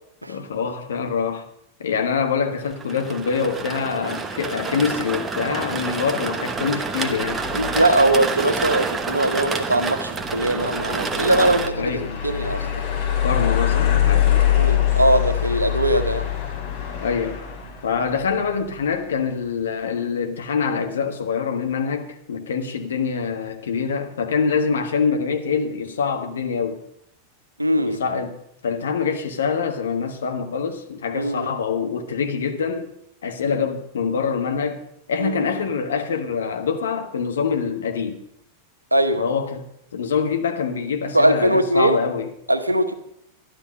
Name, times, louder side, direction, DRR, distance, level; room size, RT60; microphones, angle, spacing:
voice 1, 0.3-1.4 1.8-7.4 11.7-12.2 13.2-14.5 17.0-17.4 17.8-26.8 27.8-28.4 28.6-32.9 33.2-38.2 39.2-39.7 39.9-42.3, left 6 dB, 65° left, 1.4 m, -25 dB
sound 1, 2.7-11.7, right 4 dB, 15° right, 1.0 m, -28 dB
sound 2, 7.1-19.3, left 11 dB, 50° left, 2.9 m, -25 dB
voice 2, 7.5-12.0 12.2-12.6 14.5-16.3 27.6-28.0 31.1-31.5 35.2-35.6 38.9-39.2 41.1-42.0 42.5-42.9, right 1 dB, 85° right, 1.0 m, -20 dB
12.0 x 11.5 x 5.3 m
figure-of-eight pair, 90°, 0 cm